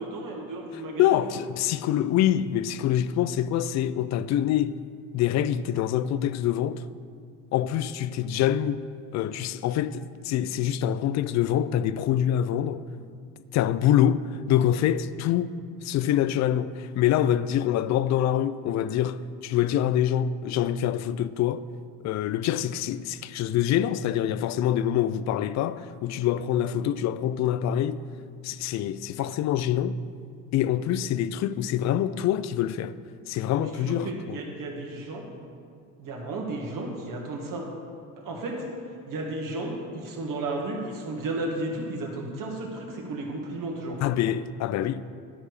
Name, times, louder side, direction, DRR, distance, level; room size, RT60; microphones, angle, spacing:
voice 1, 0.0-1.4 33.6-35.3 36.0-37.7 38.2-38.7 39.1-44.0, right 2 dB, 50° right, 1.9 m, -33 dB
voice 2, 1.0-4.7 5.1-6.8 7.5-8.8 9.1-12.8 13.5-15.6 15.8-21.6 22.0-28.0 28.4-30.0 30.5-32.9 33.3-34.4 44.0-45.0, left 11 dB, 45° left, 0.4 m, -25 dB
12.0 x 4.7 x 4.8 m
supercardioid pair, 80°, 41 cm